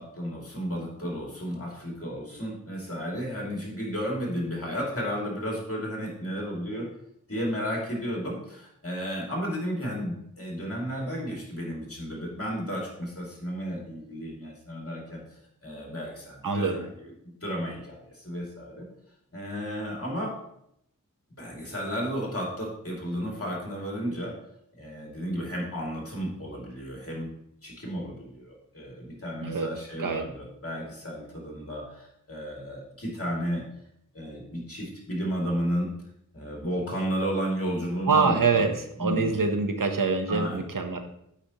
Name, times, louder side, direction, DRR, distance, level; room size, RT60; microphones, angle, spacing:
voice 1, 0.0-6.9 7.3-15.2 15.6-18.9 19.3-20.4 21.4-24.4 24.7-27.3 27.6-33.6 34.1-35.9 36.3-38.7 39.0-39.5 40.3-40.6, equal, 45° left, -2 dB, 2.4 m, -33 dB
voice 2, 16.4-16.9 29.4-29.7 30.0-30.2 38.1-41.0, right 4 dB, 80° right, 6 dB, 0.8 m, -25 dB
8.2 x 5.0 x 2.9 m, 0.74 s
wide cardioid pair, 40°, 32 cm